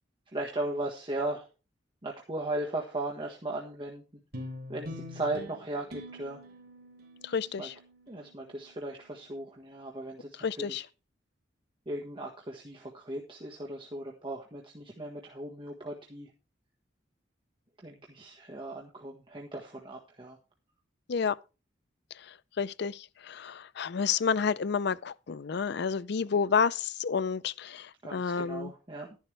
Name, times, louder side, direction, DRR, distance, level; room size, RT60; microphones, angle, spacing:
voice 1, 0.3-1.5 2.0-4.0 4.7-6.4 7.4-7.7 8.1-10.9 11.8-16.3 17.8-20.4 28.0-29.1, right 2 dB, 30° right, 1.5 m, -37 dB
sound 1, 4.3-9.0, left 1 dB, 60° right, 3.1 m, -45 dB
voice 2, 7.2-7.7 10.4-10.8 21.1-21.4 22.6-23.0 23.3-27.9 28.1-28.7, left 6 dB, 65° left, 0.5 m, -29 dB
11.5 x 11.0 x 3.4 m
head